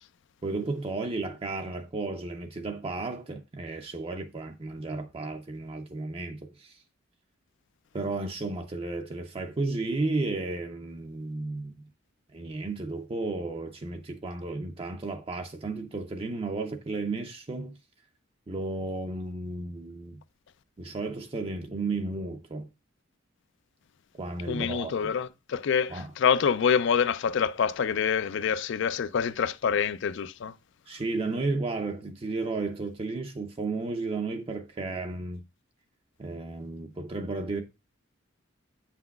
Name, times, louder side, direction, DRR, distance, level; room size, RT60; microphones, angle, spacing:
voice 1, 0.4-6.8 7.9-11.7 12.3-17.8 18.5-20.2 20.8-22.7 24.2-25.1 25.9-26.1 30.9-35.4 36.2-37.6, right 3 dB, 30° right, 0.5 m, -33 dB
voice 2, 24.5-30.5, left 7 dB, 65° left, 0.4 m, -26 dB
7.8 x 5.8 x 2.3 m
head